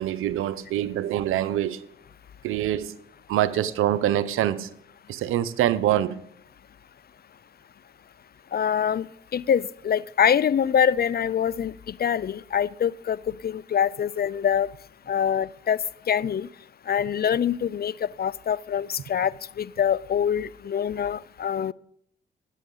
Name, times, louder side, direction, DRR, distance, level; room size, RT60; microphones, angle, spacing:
voice 1, 0.0-1.8 2.4-2.9 3.3-4.7 5.1-6.2, right 12 dB, 90° right, 0.7 m, -25 dB
voice 2, 8.5-9.0 9.3-11.7 12.0-13.2 13.4-14.7 15.1-15.8 16.1-16.5 16.9-21.7, left 8 dB, 50° left, 0.5 m, -24 dB
20.0 x 8.2 x 3.9 m
supercardioid pair, 45°, 21 cm